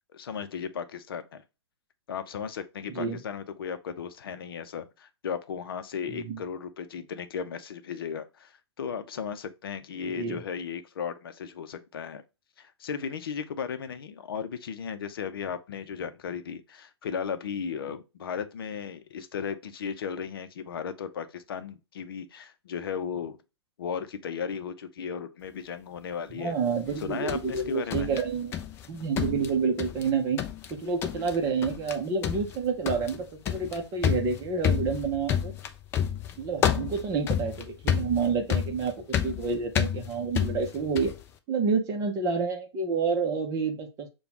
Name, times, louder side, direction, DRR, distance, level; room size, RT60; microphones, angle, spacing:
voice 1, 0.1-1.4 2.1-12.2 12.6-23.4 23.8-26.5 27.0-28.1, left 7 dB, 55° left, 0.7 m, -35 dB
voice 2, 6.1-6.4 10.2-10.4 26.4-28.5 28.9-30.4 30.7-35.5 36.4-38.9 39.2-41.1 41.5-44.1, right 5 dB, 25° right, 0.8 m, -29 dB
sound 1, 26.9-28.9 29.2-30.1 30.4-30.7 31.0-31.4 31.6-32.0 32.2-41.2, left 9 dB, 15° left, 0.4 m, -30 dB
6.7 x 2.3 x 2.9 m
figure-of-eight pair, 120°, 14 cm